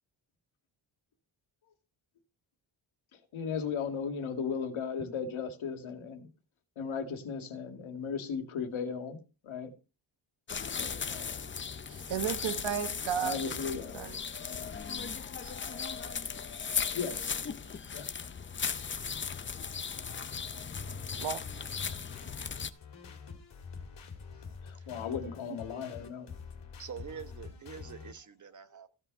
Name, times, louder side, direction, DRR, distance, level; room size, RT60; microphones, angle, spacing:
voice 1, 3.3-6.3 6.8-9.2 9.4-9.7 10.8-11.5 13.2-14.1 14.4-14.6 16.9-17.3 17.9-18.1 24.6-26.3, left 6 dB, 80° left, 2.2 m, -36 dB
sound 1, 10.5-22.7, left 6 dB, 25° left, 0.5 m, -37 dB
voice 2, 11.9-14.2 21.2-21.5, right 9 dB, 70° right, 1.3 m, -34 dB
voice 3, 15.4-16.4 24.8-24.9 26.8-28.9, right 7 dB, 40° right, 1.1 m, -47 dB
sound 2, 20.7-28.1, left 5 dB, 60° left, 2.5 m, -46 dB
15.0 x 5.8 x 5.3 m
wide cardioid pair, 170°, 47 cm